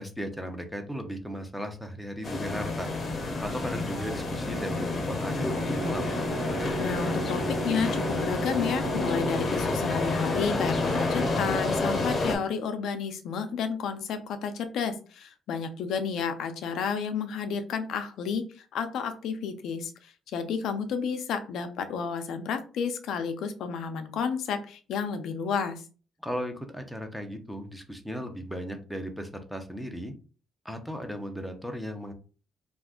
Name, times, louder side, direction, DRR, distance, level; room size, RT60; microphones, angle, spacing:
voice 1, 0.0-2.9 3.4-6.1 26.2-30.1 30.6-32.1, equal, ahead, 6 dB, 0.6 m, -36 dB
sound 1, 2.2-12.4, left 3 dB, 40° left, 0.7 m, -29 dB
Brass instrument, 5.3-9.6, right 9 dB, 60° right, 0.7 m, -38 dB
voice 2, 6.8-25.8, left 6 dB, 80° left, 7 dB, 0.4 m, -31 dB
2.4 x 2.3 x 3.5 m, 0.37 s
cardioid pair, 90°, 0 cm